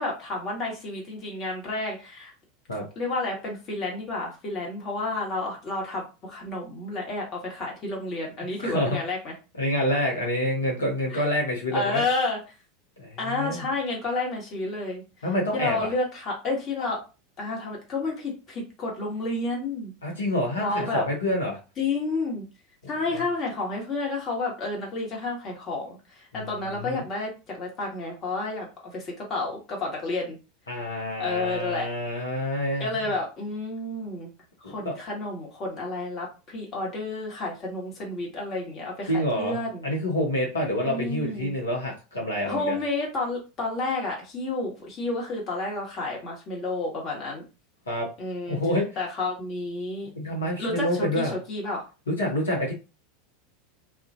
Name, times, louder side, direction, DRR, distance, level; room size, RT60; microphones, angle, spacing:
voice 1, 0.0-2.3 3.0-9.3 11.1-11.2 11.7-12.6 13.2-15.0 15.5-17.0 17.4-19.9 20.6-21.0 21.8-22.5 22.9-30.4 31.2-31.9 32.8-34.3 34.6-39.9 40.9-41.5 42.4-47.4 48.2-48.6 49.0-50.1 50.6-51.8, left 2 dB, 40° left, -1 dB, 1.2 m, -30 dB
voice 2, 8.6-9.0 9.6-12.0 13.0-13.6 15.2-15.9 20.0-21.6 23.1-23.2 26.3-27.0 30.7-32.9 34.6-34.9 39.1-42.8 47.9-48.1 48.5-48.8 50.1-51.4 52.1-52.7, left 1 dB, 80° left, -2 dB, 0.8 m, -27 dB
2.4 x 2.2 x 2.6 m, 0.31 s
figure-of-eight pair, 85°, 0 cm